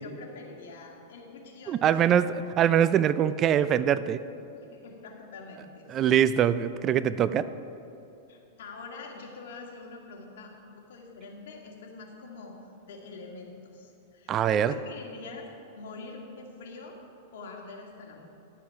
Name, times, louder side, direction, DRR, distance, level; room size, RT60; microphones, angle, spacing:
voice 1, 0.0-1.8 4.5-6.2 8.3-12.5 12.8-15.4 15.7-17.0 17.3-18.2, left 3 dB, 75° left, 0 dB, 2.0 m, -45 dB
voice 2, 1.7-4.2 5.9-7.5 14.3-14.7, right 9 dB, 30° right, 14 dB, 0.3 m, -23 dB
11.5 x 7.4 x 5.8 m, 2.7 s
hypercardioid pair, 130°, 0 cm